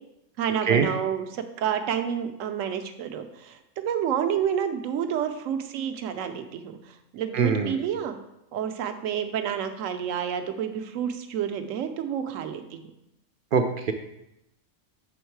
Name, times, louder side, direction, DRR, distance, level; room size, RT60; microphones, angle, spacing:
voice 1, 0.4-8.2 8.5-12.8, right 8 dB, 80° right, 8 dB, 1.0 m, -29 dB
voice 2, 7.3-7.8 13.5-13.9, right 6 dB, 65° right, 6 dB, 0.5 m, -22 dB
7.0 x 3.6 x 4.6 m, 0.86 s
omnidirectional pair, 1.3 m